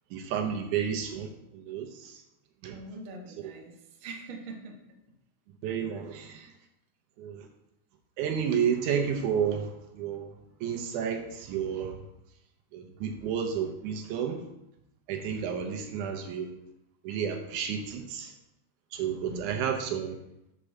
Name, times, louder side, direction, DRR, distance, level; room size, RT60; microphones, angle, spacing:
voice 1, 0.1-2.2 2.6-2.8 3.4-3.5 5.6-6.3 7.2-7.5 8.2-10.3 10.6-12.0 12.7-14.4 15.1-16.5 17.0-18.3 18.9-20.2, right 7 dB, 75° right, 3 dB, 2.1 m, -31 dB
voice 2, 2.7-3.7 4.0-4.8 6.1-6.5 19.3-19.5, right 3 dB, 60° right, 1 dB, 1.4 m, -43 dB
6.7 x 4.5 x 6.3 m, 0.86 s
omnidirectional pair, 3.7 m